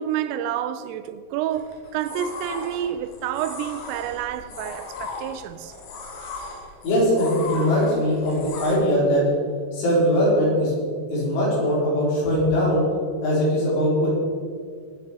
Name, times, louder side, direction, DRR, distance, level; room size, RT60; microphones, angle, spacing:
voice 1, 0.0-5.7 9.7-9.8, right 10 dB, 85° right, 3.1 m, -29 dB
sound 1, 1.5-8.8, left 3 dB, 85° left, 5.0 m, -37 dB
voice 2, 6.8-9.2 9.7-12.8 13.2-14.1, equal, 70° left, 6.6 m, -21 dB
21.5 x 7.3 x 5.0 m
omnidirectional pair, 5.9 m